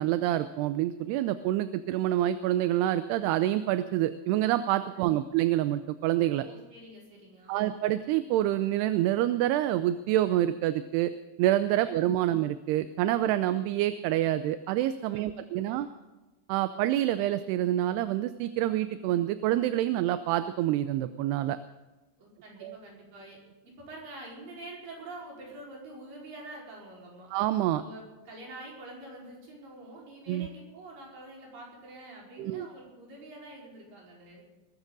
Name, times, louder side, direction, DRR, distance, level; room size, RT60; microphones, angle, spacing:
voice 1, 0.0-6.5 7.5-11.1 11.4-15.9 16.5-21.6 22.6-22.8 27.3-27.8 30.3-30.5 32.4-32.7, right 13 dB, 85° right, 11 dB, 2.7 m, -27 dB
voice 2, 6.4-7.8 11.8-11.9 15.1-16.0 22.2-27.3 27.7-34.5, right 1 dB, 55° right, -3 dB, 6.5 m, -46 dB
21.5 x 14.0 x 4.0 m, 1.1 s
omnidirectional pair, 4.7 m